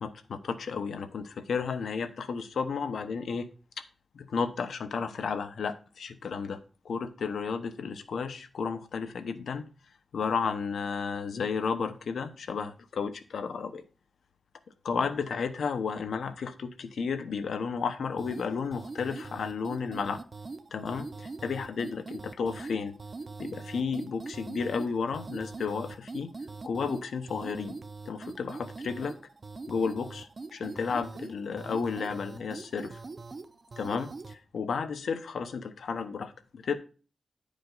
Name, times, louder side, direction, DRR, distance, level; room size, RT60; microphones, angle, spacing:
voice 1, 0.0-3.5 4.1-6.6 6.8-9.7 10.1-13.8 14.8-20.2 20.7-22.9 23.4-26.3 26.6-27.8 28.1-29.2 29.7-33.0 33.8-36.8, left 5 dB, 80° left, 10 dB, 0.9 m, -33 dB
sound 1, 18.2-34.4, right 3 dB, 35° right, 0.4 m, -42 dB
10.5 x 5.1 x 3.9 m, 0.36 s
wide cardioid pair, 175°, 0 cm